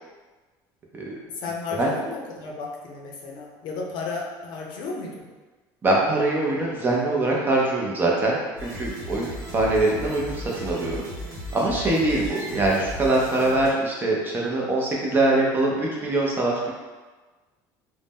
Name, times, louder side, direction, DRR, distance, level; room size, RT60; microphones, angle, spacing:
voice 1, 1.4-5.2, left 4 dB, 65° left, -1 dB, 0.6 m, -33 dB
voice 2, 5.8-11.0 11.5-16.7, right 2 dB, 25° right, -3 dB, 0.6 m, -23 dB
sound 1, 8.6-13.7, equal, 85° right, 0.9 m, -36 dB
2.6 x 2.1 x 3.5 m, 1.3 s
cardioid pair, 130°, 9 cm